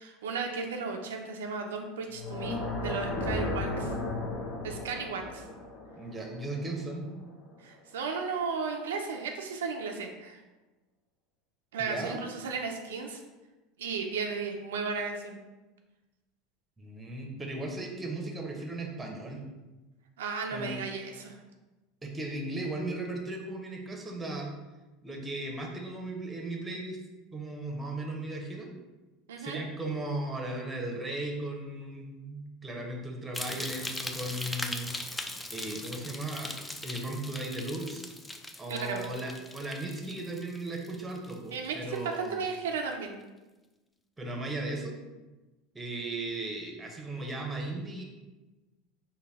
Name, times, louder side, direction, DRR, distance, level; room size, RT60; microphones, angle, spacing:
voice 1, 0.0-3.9 4.6-5.4 7.6-10.4 11.7-13.2 13.8-15.4 20.2-21.4 29.3-29.6 38.7-39.0 41.5-43.2, right 5 dB, 85° right, 3 dB, 0.4 m, -35 dB
sound 1, 2.1-7.2, left 2 dB, 50° left, 0.7 m, -35 dB
voice 2, 6.0-7.1 11.8-12.2 16.8-19.4 20.5-20.8 22.0-24.5 25.0-27.0 27.3-28.7 29.4-34.9 35.5-36.5 36.8-38.0 38.6-42.4 44.2-45.0 45.7-48.0, right 2 dB, 15° right, 1 dB, 0.8 m, -36 dB
sound 2, 33.3-41.7 42.0-42.4 42.9-43.0, left 1 dB, 10° left, 0.3 m, -40 dB
4.0 x 2.3 x 3.5 m, 1.1 s
hypercardioid pair, 95°, 0 cm